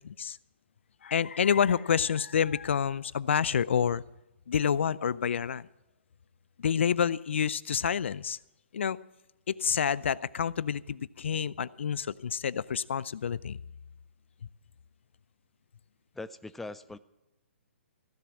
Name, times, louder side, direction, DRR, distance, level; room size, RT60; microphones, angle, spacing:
voice 1, 0.0-0.4 1.0-4.0 4.5-5.7 6.6-8.4 8.7-9.0 9.5-13.6, left 7 dB, 65° left, 20 dB, 0.4 m, -28 dB
voice 2, 16.2-17.0, left 2 dB, 5° left, 12 dB, 0.4 m, -41 dB
15.0 x 6.9 x 8.6 m, 0.96 s
figure-of-eight pair, 130°, 7 cm